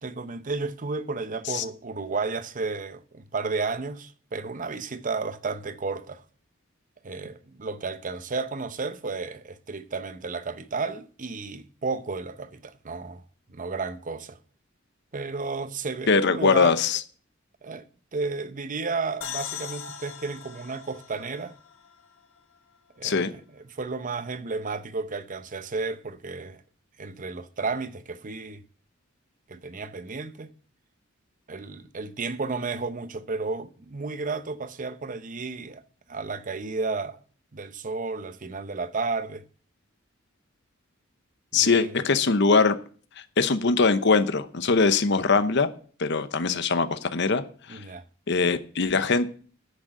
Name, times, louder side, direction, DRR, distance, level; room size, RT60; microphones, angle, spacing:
voice 1, 0.0-6.2 7.0-13.2 13.5-14.4 15.1-16.7 17.6-17.8 18.1-21.5 23.0-26.6 27.0-28.6 29.5-30.5 31.5-35.8 36.1-37.2 37.5-39.5 41.5-41.9 45.2-45.3 47.7-48.0, right 4 dB, 40° right, 0.7 m, -32 dB
voice 2, 16.1-17.0 23.0-23.3 41.5-42.8 43.4-45.7 46.0-47.4 47.7-47.8 48.3-49.3, left 4 dB, 60° left, 0.9 m, -22 dB
sound 1, 19.2-22.8, left 8 dB, 75° left, 1.6 m, -40 dB
9.9 x 6.5 x 7.7 m
head